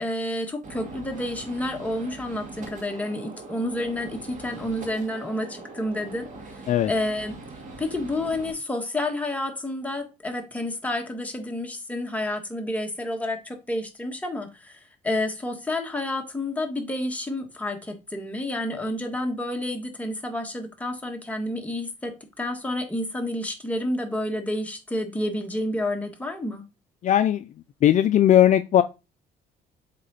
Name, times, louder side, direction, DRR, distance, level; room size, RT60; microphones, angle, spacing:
voice 1, 0.0-6.3 6.9-7.4 7.8-26.6, left 1 dB, 10° left, 1.5 m, -30 dB
Gunshot gunfire, 0.6-8.5, right 2 dB, 45° right, 2.3 m, -42 dB
voice 2, 27.0-27.5 27.8-28.8, left 11 dB, 45° left, 0.4 m, -18 dB
7.4 x 3.7 x 4.1 m
cardioid pair, 110°, 17 cm